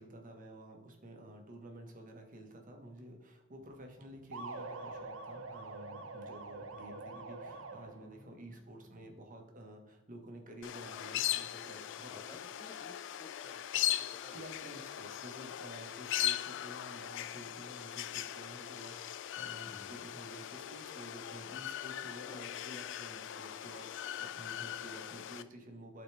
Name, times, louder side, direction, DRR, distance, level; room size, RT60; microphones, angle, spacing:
voice 1, 0.0-12.4 14.3-26.0, right 1 dB, 40° right, 3 dB, 1.3 m, -51 dB
sound 1, 3.6-9.1, equal, 10° right, 1.3 m, -62 dB
sound 2, 4.3-8.2, right 3 dB, 85° right, 0.7 m, -45 dB
sound 3, 10.6-25.4, left 12 dB, 65° left, 0.4 m, -39 dB
voice 2, 12.1-14.6 19.7-20.1 22.3-22.5, left 1 dB, 15° left, 8 dB, 0.6 m, -56 dB
11.5 x 4.1 x 3.3 m, 0.92 s
head